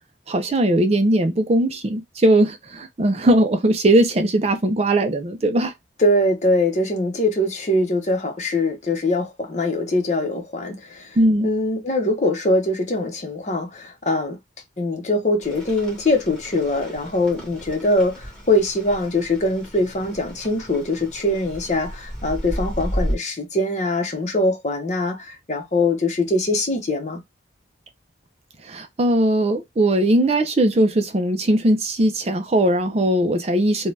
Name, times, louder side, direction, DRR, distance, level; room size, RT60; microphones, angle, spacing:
voice 1, 0.3-5.7 11.2-11.5 28.6-33.9, right 1 dB, 35° right, 0.4 m, -19 dB
voice 2, 6.0-11.2 11.4-14.4 14.8-27.2, left 1 dB, 35° left, 0.7 m, -22 dB
Rain, 15.4-23.2, equal, 5° left, 1.1 m, -33 dB
2.7 x 2.2 x 3.2 m
head